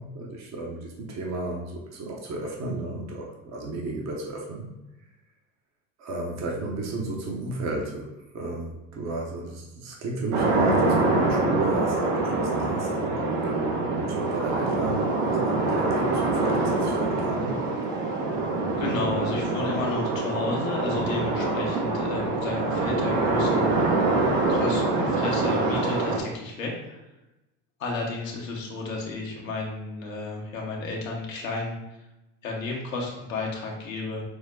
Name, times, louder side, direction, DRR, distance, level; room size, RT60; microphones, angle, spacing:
voice 1, 0.0-4.7 6.0-17.5, right 2 dB, 45° right, -1 dB, 1.1 m, -33 dB
sound 1, 10.3-26.2, right 3 dB, 65° right, 1.2 m, -25 dB
voice 2, 18.8-23.7 24.5-27.0 27.8-31.8 32.4-34.2, left 3 dB, 90° left, -2 dB, 1.3 m, -32 dB
6.2 x 2.2 x 3.8 m, 0.98 s
hypercardioid pair, 80°, 39 cm